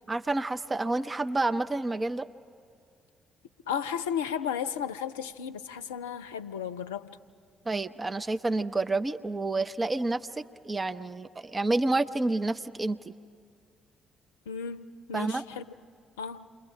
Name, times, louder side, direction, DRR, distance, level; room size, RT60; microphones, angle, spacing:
voice 1, 0.1-2.3 7.7-13.1 15.1-15.4, right 2 dB, 25° right, 10 dB, 0.6 m, -29 dB
voice 2, 3.7-7.2 14.5-15.6 16.2-16.5, left 8 dB, 75° left, 10 dB, 0.5 m, -34 dB
28.0 x 22.0 x 4.9 m, 2.3 s
figure-of-eight pair, 45°, 0 cm